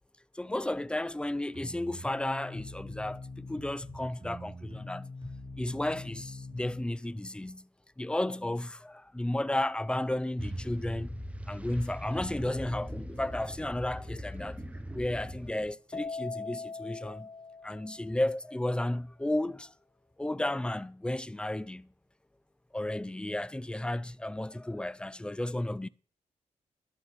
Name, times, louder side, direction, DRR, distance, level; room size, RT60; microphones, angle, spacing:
voice 1, 0.3-5.1 5.6-7.7 8.0-11.2 11.5-14.6 14.9-17.3 17.6-19.7 20.2-21.9 22.7-25.9, left 1 dB, 10° left, 0.4 m, -33 dB
sound 1, 1.5-6.9, left 2 dB, 40° right, 4.1 m, -43 dB
sound 2, 10.4-15.7, equal, 10° right, 1.0 m, -40 dB
Keyboard (musical), 15.9-18.4, left 4 dB, 25° left, 0.8 m, -41 dB
12.5 x 7.4 x 5.8 m
cardioid pair, 100°, 13 cm